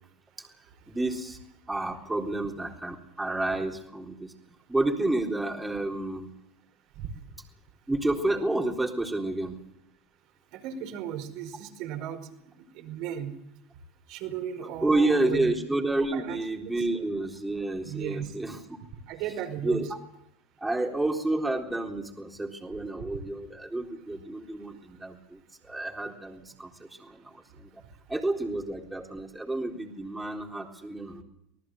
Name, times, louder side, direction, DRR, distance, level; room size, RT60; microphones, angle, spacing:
voice 1, 0.9-1.4 1.7-4.3 4.7-6.3 7.9-9.6 14.8-18.6 19.6-19.9 20.6-27.8 28.1-31.2, right 2 dB, 10° right, 1 dB, 3.7 m, -30 dB
voice 2, 10.5-12.2 12.6-13.3 14.1-15.5 16.1-16.4 16.8-16.9 17.8-18.4 19.1-19.9, right 10 dB, 60° right, 5 dB, 5.0 m, -36 dB
25.5 x 18.5 x 8.0 m, 0.79 s
hypercardioid pair, 80°, 0 cm